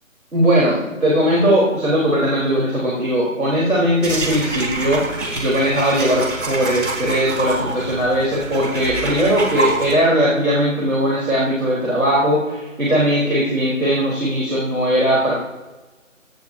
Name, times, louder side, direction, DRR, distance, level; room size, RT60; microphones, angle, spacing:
voice 1, 0.3-5.0 5.3-15.4, equal, 85° right, -5 dB, 4.0 m, -19 dB
sound 1, 4.0-9.9, right 3 dB, 60° right, 3.8 m, -26 dB
17.0 x 13.5 x 2.8 m, 1.2 s
figure-of-eight pair, 160°, 41 cm